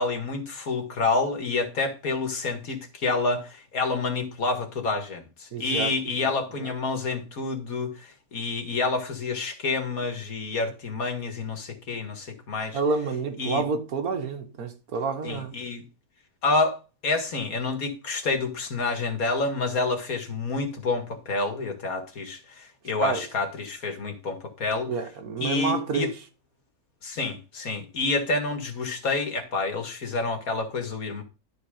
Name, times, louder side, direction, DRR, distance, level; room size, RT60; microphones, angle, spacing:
voice 1, 0.0-12.8 13.4-13.6 15.2-15.8 16.4-16.8 17.0-24.9 25.4-26.1 27.0-31.2, left 3 dB, 75° left, 2.3 m, -28 dB
voice 2, 5.5-6.3 12.7-15.6 23.0-23.2 24.9-26.1, right 4 dB, 80° right, 1.8 m, -29 dB
12.0 x 4.7 x 5.0 m
omnidirectional pair, 1.5 m